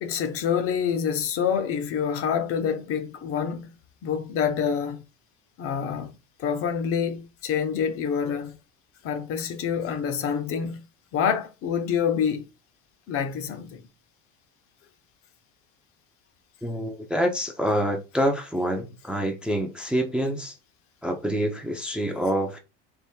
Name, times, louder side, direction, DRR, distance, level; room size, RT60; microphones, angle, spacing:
voice 1, 0.0-3.7 4.0-5.0 5.6-6.1 6.4-8.6 9.0-10.8 11.1-12.5 13.1-13.8, left 7 dB, 40° left, 0.6 m, -27 dB
voice 2, 16.6-20.6 21.0-22.6, equal, 5° right, 0.5 m, -26 dB
3.6 x 2.5 x 4.3 m
supercardioid pair, 130°, 33 cm